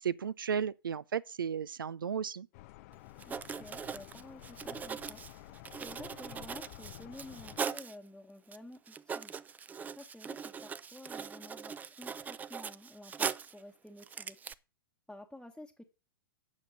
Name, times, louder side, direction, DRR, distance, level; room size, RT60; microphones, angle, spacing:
voice 1, 0.0-2.5, right 7 dB, 75° right, 0.5 m, -34 dB
sound 1, 2.5-7.6, left 18 dB, 45° left, 0.4 m, -51 dB
Writing, 2.9-3.0 3.2-7.9 8.5-8.6 8.9-13.6 14.0-14.5, right 6 dB, 15° right, 0.5 m, -40 dB
voice 2, 3.3-5.2 5.7-9.3 9.9-14.4 15.1-15.8, left 1 dB, ahead, 1.1 m, -51 dB
9.5 x 6.5 x 7.2 m
figure-of-eight pair, 105°, 11 cm